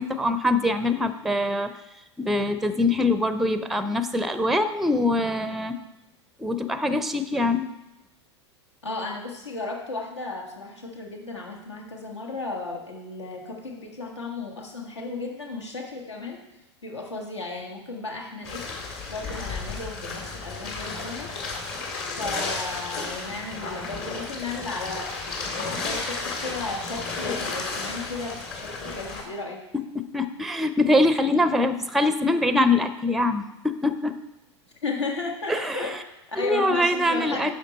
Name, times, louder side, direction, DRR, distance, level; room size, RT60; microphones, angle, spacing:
voice 1, 0.0-1.7 2.2-5.7 6.4-7.7 29.7-29.8 30.1-34.1 35.5-36.0 36.4-37.5, left 1 dB, ahead, 11 dB, 0.5 m, -23 dB
voice 2, 8.8-16.4 16.8-18.7 19.1-21.3 22.2-25.1 25.5-29.6 34.8-37.5, left 3 dB, 75° left, 0 dB, 1.6 m, -34 dB
sound 1, 18.4-29.2, left 3 dB, 45° left, 2.1 m, -33 dB
10.0 x 6.5 x 4.1 m, 0.94 s
figure-of-eight pair, 85°, 15 cm